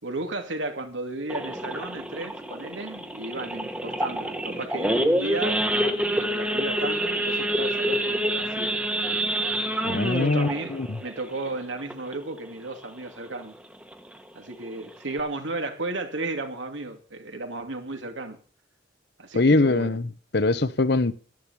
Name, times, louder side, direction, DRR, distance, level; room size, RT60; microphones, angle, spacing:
voice 1, 0.0-8.8 10.0-13.6 14.3-18.4 19.2-20.0, right 2 dB, 90° right, 2.6 m, -34 dB
Idling / Accelerating revving vroom / Sawing, 1.3-12.4 12.8-13.0 13.2-13.3 13.8-14.1 14.6-14.7 14.9-15.2, right 1 dB, 5° right, 1.2 m, -27 dB
voice 2, 9.8-10.9 19.4-21.1, left 2 dB, 60° left, 0.9 m, -22 dB
12.5 x 11.0 x 7.1 m
head